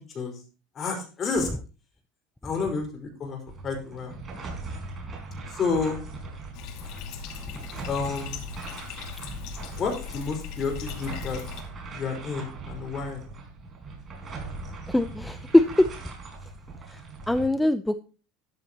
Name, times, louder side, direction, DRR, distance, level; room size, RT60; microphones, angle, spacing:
voice 1, 0.7-1.5 2.4-4.2 5.5-6.0 7.9-8.4 9.8-11.4 11.9-13.2, left 4 dB, 35° left, 3 dB, 5.1 m, -30 dB
sound 1, 3.5-17.5, right 3 dB, 30° right, 4.7 m, -40 dB
Bathtub (filling or washing), 6.5-11.6, left 7 dB, 65° left, 2.5 m, -39 dB
voice 2, 14.9-16.0 17.3-18.0, left 1 dB, 5° left, 11 dB, 0.6 m, -21 dB
13.0 x 11.0 x 3.0 m, 0.35 s
supercardioid pair, 120°, 0 cm